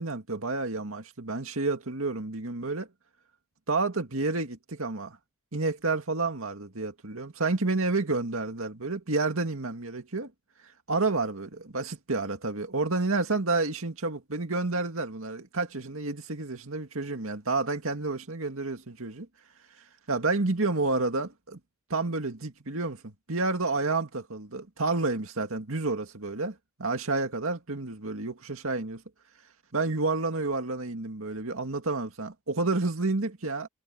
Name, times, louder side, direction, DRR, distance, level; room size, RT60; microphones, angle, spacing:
voice 1, 0.0-2.9 3.7-5.2 5.5-10.3 10.9-19.3 20.1-21.6 21.9-29.0 29.7-33.7, right 3 dB, 70° right, 2.2 m, -30 dB
head